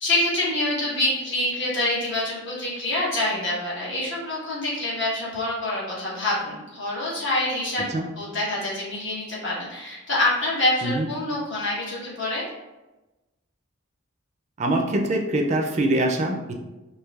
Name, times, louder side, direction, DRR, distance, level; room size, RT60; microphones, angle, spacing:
voice 1, 0.0-7.9 8.2-12.4, left 1 dB, 60° left, -6 dB, 1.3 m, -26 dB
voice 2, 14.6-16.5, right 1 dB, 35° right, 2 dB, 0.4 m, -24 dB
4.5 x 2.7 x 2.3 m, 1.1 s
head